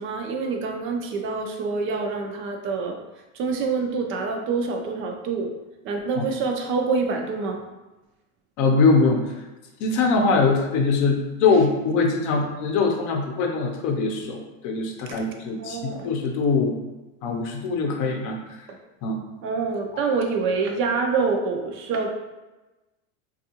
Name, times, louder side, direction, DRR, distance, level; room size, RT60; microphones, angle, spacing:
voice 1, 0.0-3.0 3.3-5.5 5.8-7.6 15.1-15.2 15.6-16.1 19.4-22.1, right 4 dB, 35° right, 3 dB, 0.4 m, -26 dB
voice 2, 8.6-9.3 9.8-16.7 17.2-18.7 19.0-19.2, left 4 dB, 50° left, 2 dB, 0.7 m, -22 dB
3.5 x 2.4 x 2.8 m, 1.1 s
supercardioid pair, 130°, 39 cm